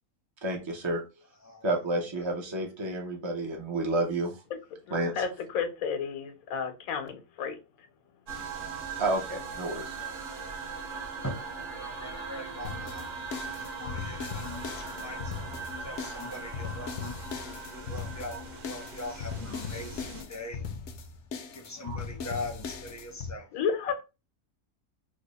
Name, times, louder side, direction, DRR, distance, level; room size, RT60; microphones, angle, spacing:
voice 1, 0.4-1.0 1.6-4.4 4.9-5.1 9.0-9.9, right 2 dB, 45° right, 0.3 m, -30 dB
voice 2, 4.9-7.6 23.5-24.0, left 6 dB, 85° left, 1.1 m, -32 dB
sound 1, 8.3-20.2, right 4 dB, 65° right, 1.2 m, -40 dB
voice 3, 9.9-10.4 11.2-15.3 15.8-17.3 17.7-20.7 21.5-23.5, left 1 dB, 20° left, 0.4 m, -41 dB
sound 2, 12.6-23.3, left 6 dB, 70° left, 0.8 m, -39 dB
3.4 x 2.0 x 3.9 m
omnidirectional pair, 1.5 m